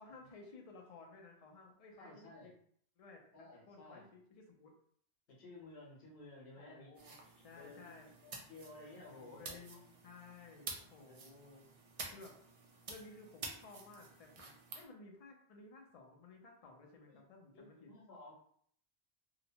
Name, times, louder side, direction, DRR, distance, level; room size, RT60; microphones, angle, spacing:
voice 1, 0.0-2.6 3.0-4.7 6.6-8.1 9.1-11.6 12.1-12.3 12.9-17.9, left 3 dB, 45° left, 1 dB, 0.5 m, -56 dB
voice 2, 1.9-2.5 3.3-4.0 5.3-6.9 7.5-7.9 8.2-9.8 12.2-12.3 17.1-17.2 17.5-18.3, left 2 dB, 75° left, -4 dB, 1.1 m, -55 dB
sound 1, 7.0-14.8, right 3 dB, 50° right, 0.4 m, -50 dB
2.9 x 2.0 x 2.7 m, 0.63 s
omnidirectional pair, 1.1 m